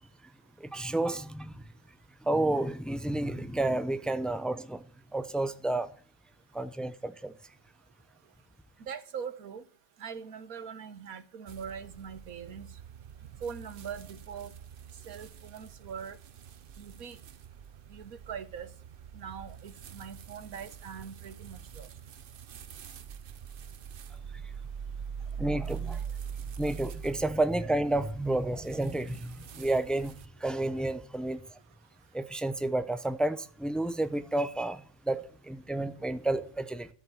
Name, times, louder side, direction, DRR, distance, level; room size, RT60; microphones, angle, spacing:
voice 1, 0.6-1.6 2.2-4.8 5.1-5.9 6.5-7.3 25.4-26.0 26.6-30.1 30.4-31.4 32.1-36.9, right 2 dB, ahead, 0.3 m, -30 dB
voice 2, 8.8-9.6 10.0-12.7 13.4-14.5 15.1-16.2 16.8-17.2 17.9-18.7 19.1-21.9, right 7 dB, 80° right, 1.5 m, -42 dB
sound 1, 11.5-30.2, right 7 dB, 50° right, 0.7 m, -44 dB
13.5 x 7.6 x 7.5 m
omnidirectional pair, 1.5 m